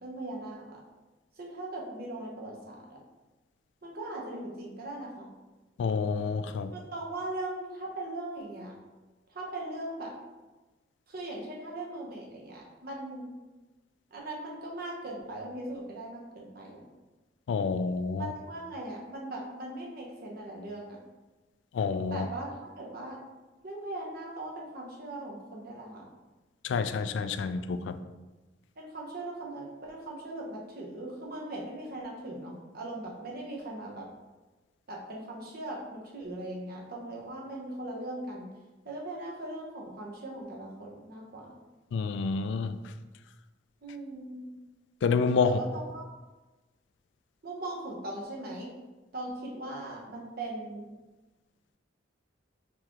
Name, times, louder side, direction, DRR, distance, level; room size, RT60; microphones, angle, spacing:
voice 1, 0.0-0.8 1.4-3.0 3.8-5.3 6.7-8.7 9.3-10.1 11.1-13.3 14.1-16.8 18.2-21.0 22.1-23.2 23.6-26.1 28.8-34.1 34.9-38.5 38.8-41.6 43.8-44.5 45.4-46.1 47.4-48.7 49.1-50.8, right 1 dB, 55° right, -1 dB, 1.0 m, -39 dB
voice 2, 5.8-6.7 17.5-18.3 21.7-22.3 26.6-28.0 41.9-42.8 45.0-45.6, left 5 dB, 75° left, 10 dB, 0.3 m, -28 dB
4.6 x 3.1 x 3.6 m, 1.2 s
head